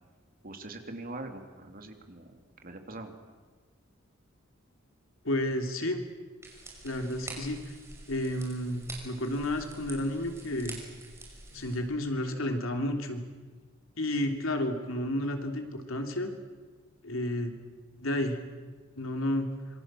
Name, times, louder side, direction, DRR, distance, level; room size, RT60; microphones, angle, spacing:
voice 1, 0.4-3.1, right 2 dB, 45° right, 5 dB, 3.0 m, -43 dB
voice 2, 5.2-6.0 6.8-7.6 8.1-10.8 11.5-13.2 14.0-16.3 17.0-17.6 18.0-18.4 19.0-19.5, left 1 dB, 75° left, 4 dB, 3.2 m, -31 dB
sound 1, 6.4-11.8, right 2 dB, 15° right, 5.9 m, -46 dB
26.5 x 24.5 x 7.7 m, 1.4 s
head